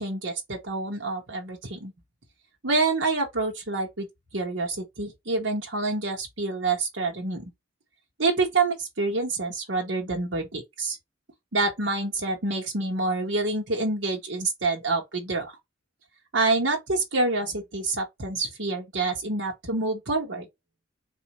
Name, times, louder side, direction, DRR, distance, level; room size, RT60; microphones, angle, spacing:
voice 1, 0.0-1.9 2.6-4.1 4.3-7.5 8.2-11.0 11.5-15.5 16.3-20.5, right 3 dB, 80° right, 1.2 m, -27 dB
4.2 x 2.7 x 2.9 m
head